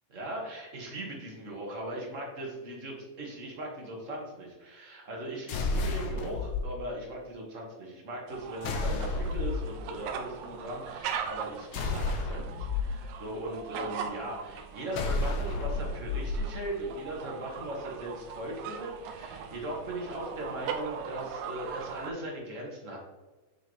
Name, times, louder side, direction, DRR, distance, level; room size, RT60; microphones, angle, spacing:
voice 1, 0.1-23.0, right 1 dB, 35° right, -2 dB, 1.3 m, -39 dB
sound 1, 5.5-6.6 8.6-9.7 11.7-12.8 14.9-16.4, left 3 dB, 70° left, 1.3 m, -31 dB
sound 2, 8.3-22.1, right 7 dB, 90° right, 2.1 m, -40 dB
8.0 x 5.9 x 3.1 m, 1.2 s
omnidirectional pair, 3.3 m